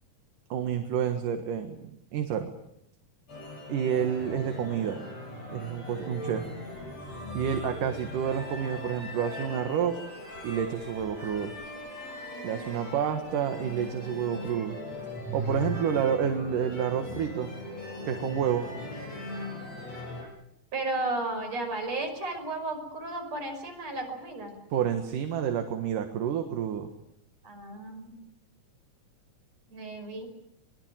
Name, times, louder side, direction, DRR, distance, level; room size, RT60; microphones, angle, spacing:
voice 1, 0.5-2.5 3.7-5.0 5.5-6.4 7.3-10.0 10.4-11.5 12.4-14.8 15.3-17.5 18.1-18.7 24.7-26.9, right 8 dB, 70° right, 6 dB, 3.1 m, -29 dB
sound 1, 3.3-20.2, left 1 dB, 50° left, 9.2 m, -39 dB
voice 2, 20.7-24.5 27.4-28.2 29.7-30.3, right 2 dB, 50° right, 3 dB, 6.8 m, -34 dB
23.5 x 22.0 x 9.1 m, 0.79 s
omnidirectional pair, 3.9 m